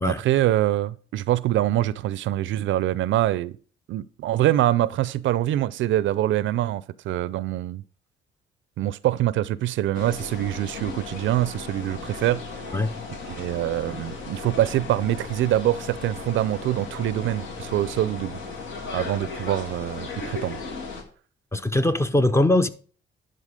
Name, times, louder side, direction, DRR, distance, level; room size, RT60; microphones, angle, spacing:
voice 1, 0.0-3.6 3.9-7.8 8.8-12.4 13.3-18.4 18.9-20.6, right 13 dB, 75° right, 0.4 m, -24 dB
sound 1, 9.9-21.0, left 4 dB, 80° left, 1.7 m, -36 dB
voice 2, 21.5-22.7, left 1 dB, 15° left, 0.6 m, -21 dB
11.0 x 4.0 x 5.0 m
cardioid pair, 90°, 20 cm